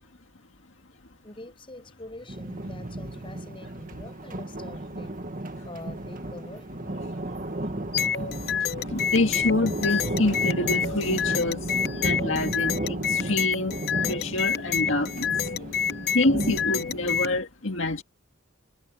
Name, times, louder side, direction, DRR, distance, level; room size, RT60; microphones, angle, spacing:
voice 1, 1.2-5.2 5.6-7.0, left 1 dB, 25° left, 6.4 m, -44 dB
sound 1, 2.3-17.4, right 1 dB, 40° right, 1.7 m, -33 dB
sound 2, 7.9-17.4, left 8 dB, 50° left, 1.0 m, -29 dB
voice 2, 8.6-13.8 14.1-15.7 16.1-18.0, left 2 dB, 65° left, 1.9 m, -27 dB
head